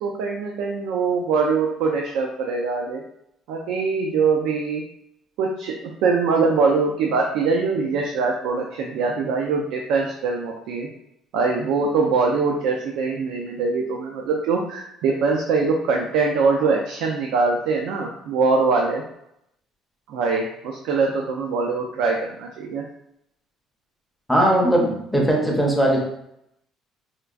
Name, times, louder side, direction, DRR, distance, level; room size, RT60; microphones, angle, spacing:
voice 1, 0.0-3.0 3.5-4.8 5.4-10.9 11.3-19.0 20.1-22.8, right 4 dB, 90° right, 1 dB, 0.4 m, -23 dB
voice 2, 24.3-26.0, right 1 dB, ahead, -1 dB, 0.6 m, -19 dB
4.4 x 2.3 x 2.4 m, 0.76 s
cardioid pair, 170°, 0 cm